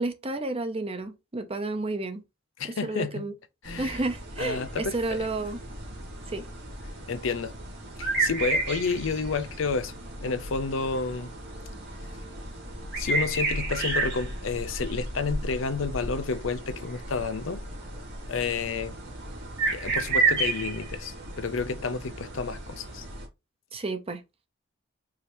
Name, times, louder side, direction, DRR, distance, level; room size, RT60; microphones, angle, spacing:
voice 1, 0.0-2.2 2.8-3.3 3.8-5.6 6.3-6.5 23.7-24.2, right 2 dB, 30° right, 0.7 m, -31 dB
voice 2, 2.6-3.3 3.6-4.0 4.4-5.3 7.1-7.5 8.0-9.9 10.2-11.3 13.0-17.6 18.3-18.9 19.7-23.1, left 4 dB, 75° left, 0.6 m, -30 dB
sound 1, 3.6-23.3, right 3 dB, 60° right, 2.2 m, -32 dB
4.9 x 2.8 x 3.0 m
head